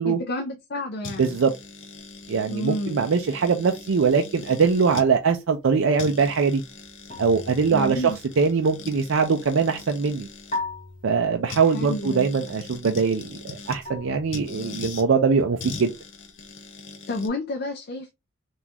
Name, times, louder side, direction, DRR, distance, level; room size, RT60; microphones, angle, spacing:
voice 1, 0.0-1.4 2.5-3.0 7.7-8.2 11.6-12.3 17.1-18.1, left 1 dB, 50° left, 0.5 m, -30 dB
sound 1, 1.0-5.1 5.6-5.7 6.0-10.6 11.5-13.8 14.3-15.1 15.6-17.3, left 4 dB, 70° left, 0.8 m, -41 dB
voice 2, 1.2-1.5 2.3-6.6 7.2-10.3 11.0-15.9, right 5 dB, 75° right, 0.5 m, -22 dB
sound 2, 7.1-8.8 10.5-11.9 13.9-15.1, left 2 dB, 35° left, 1.0 m, -38 dB
3.9 x 2.5 x 2.8 m
head